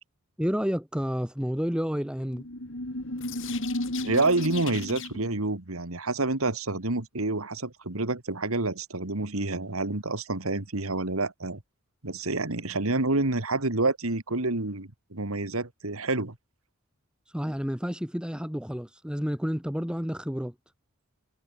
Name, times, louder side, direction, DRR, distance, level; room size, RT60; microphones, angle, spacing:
voice 1, 0.4-2.5 17.3-20.5, equal, 5° right, 2.2 m, -30 dB
sound 1, 2.3-5.4, left 2 dB, 65° left, 3.8 m, -33 dB
voice 2, 4.0-11.6 12.0-16.4, right 2 dB, 85° right, 2.4 m, -28 dB
head